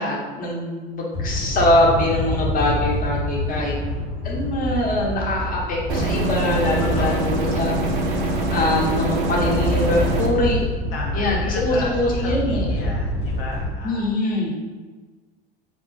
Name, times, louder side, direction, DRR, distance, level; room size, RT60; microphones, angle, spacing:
voice 1, 0.0-3.7 4.2-7.7 8.0-10.6 11.1-12.8 13.8-14.5, left 1 dB, 30° left, -3 dB, 0.9 m, -23 dB
sound 1, 1.1-13.8, left 1 dB, 90° left, 1.4 m, -27 dB
voice 2, 3.5-4.1 6.8-7.4 10.9-14.2, left 2 dB, 70° left, -2 dB, 0.7 m, -35 dB
sound 2, 5.9-10.3, right 2 dB, 65° right, 0.6 m, -24 dB
3.2 x 2.2 x 3.2 m, 1.3 s
hypercardioid pair, 80°, 30 cm